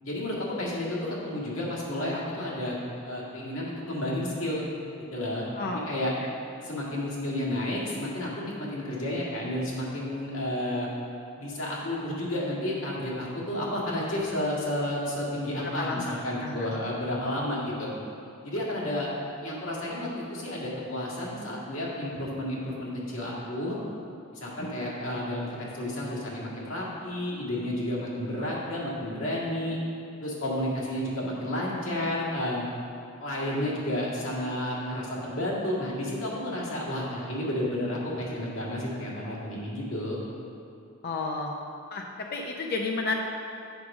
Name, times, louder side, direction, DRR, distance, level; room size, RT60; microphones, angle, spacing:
voice 1, 0.0-2.8 3.0-4.7 5.1-6.1 6.6-10.9 11.4-17.9 18.4-23.8 24.3-29.8 30.2-32.7 33.2-40.2, left 1 dB, 70° left, -5 dB, 2.0 m, -31 dB
voice 2, 5.6-5.9 6.2-6.3 15.6-16.1 16.4-16.7 24.6-24.7 41.0-41.5 41.9-43.1, left 3 dB, 50° left, 1 dB, 0.6 m, -32 dB
8.1 x 4.9 x 6.0 m, 2.6 s
head